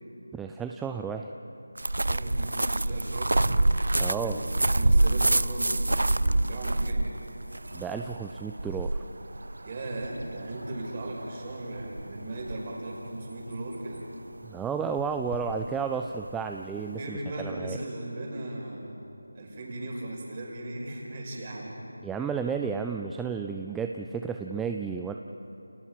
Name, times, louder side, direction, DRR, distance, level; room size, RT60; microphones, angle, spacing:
voice 1, 0.3-1.3 4.0-4.4 7.7-9.0 14.4-17.8 22.0-25.1, right 6 dB, 5° right, 4 dB, 0.4 m, -32 dB
sound 1, 1.8-17.0, right 2 dB, 80° right, 0.7 m, -28 dB
voice 2, 2.0-3.6 4.1-7.1 9.6-14.0 16.7-19.0 19.3-21.8, right 1 dB, 30° right, -2 dB, 5.6 m, -37 dB
29.5 x 27.5 x 4.9 m, 2.8 s
figure-of-eight pair, 170°, 0 cm